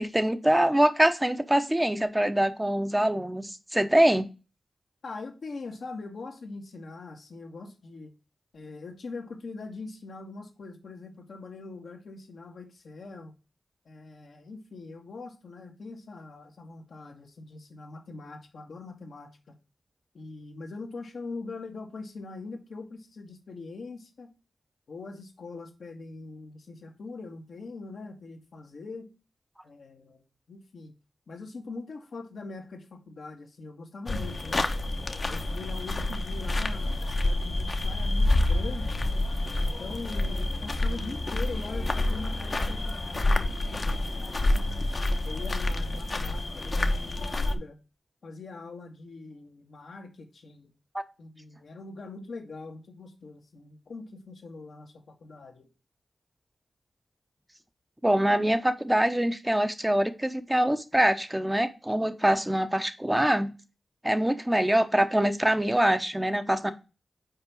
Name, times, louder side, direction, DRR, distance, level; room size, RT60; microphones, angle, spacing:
voice 1, 0.0-4.3 50.9-51.0 58.0-63.5 64.0-66.7, right 1 dB, 10° right, 9 dB, 0.9 m, -24 dB
voice 2, 5.0-8.1 8.5-13.3 13.8-19.5 20.1-24.3 24.9-29.1 29.6-30.9 31.3-34.7 35.3-39.0 39.6-43.4 43.7-44.8 45.2-47.8 48.2-50.7 51.2-55.7, left 3 dB, 80° left, 2 dB, 1.6 m, -42 dB
sound 1, 34.1-47.6, left 2 dB, 45° left, 1.0 m, -28 dB
5.5 x 4.6 x 5.4 m, 0.31 s
cardioid pair, 55°, 0 cm